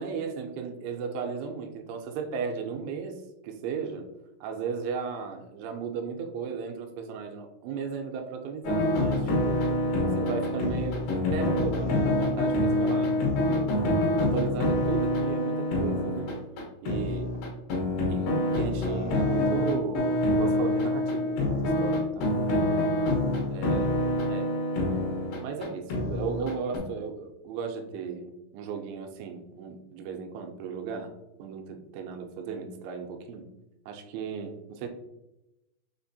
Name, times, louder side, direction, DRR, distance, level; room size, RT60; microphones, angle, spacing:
voice 1, 0.0-4.1 4.4-9.7 10.2-13.7 14.2-16.3 16.8-17.3 18.1-23.0 23.5-24.0 24.2-24.5 25.4-31.1 31.4-33.5 33.9-34.9, right 6 dB, 85° right, 4 dB, 2.9 m, -35 dB
sound 1, 8.6-26.8, left 1 dB, 70° left, 2.8 m, -26 dB
6.7 x 2.9 x 2.7 m, 0.95 s
omnidirectional pair, 5.2 m